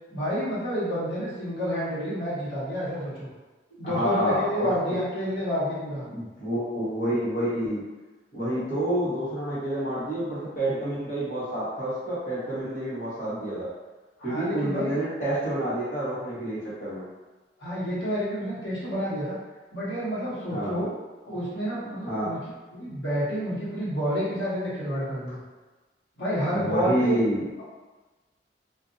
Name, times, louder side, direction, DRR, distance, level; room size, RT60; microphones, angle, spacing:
voice 1, 0.1-3.3 3.8-6.1 14.2-15.0 17.6-19.4 19.7-20.9 21.2-22.4 22.7-25.4 26.2-27.2, equal, 75° left, -9 dB, 1.2 m, -29 dB
voice 2, 3.8-5.0 6.1-7.8 8.3-13.7 14.2-17.1 20.5-20.8 22.1-22.3 26.5-27.4, right 1 dB, 50° left, -9 dB, 1.2 m, -28 dB
2.6 x 2.5 x 2.6 m, 1.2 s
head